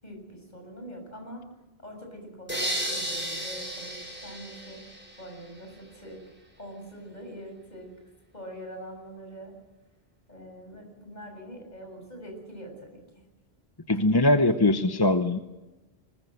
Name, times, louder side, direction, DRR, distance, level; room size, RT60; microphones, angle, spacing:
voice 1, 0.0-1.5 1.8-4.9 5.2-6.2 6.6-7.9 8.3-9.6 10.3-13.0 13.9-14.0, equal, 45° left, 3 dB, 7.3 m, -43 dB
sound 1, 2.5-5.5, right 1 dB, 10° right, 5.3 m, -33 dB
voice 2, 13.9-15.4, left 2 dB, 25° left, 8 dB, 0.9 m, -21 dB
21.0 x 20.0 x 7.9 m, 1.1 s
omnidirectional pair, 1.0 m